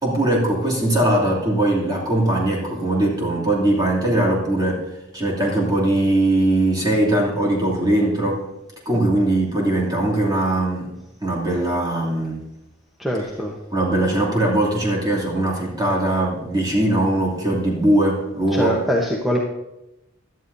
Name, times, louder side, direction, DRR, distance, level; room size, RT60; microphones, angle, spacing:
voice 1, 0.0-4.9 5.1-8.4 8.8-10.9 11.2-12.4 13.2-13.3 13.7-18.8, right 1 dB, 20° right, -3 dB, 2.8 m, -20 dB
voice 2, 13.0-13.5 18.5-19.4, equal, ahead, -3 dB, 1.0 m, -22 dB
17.0 x 11.5 x 2.7 m, 0.91 s
head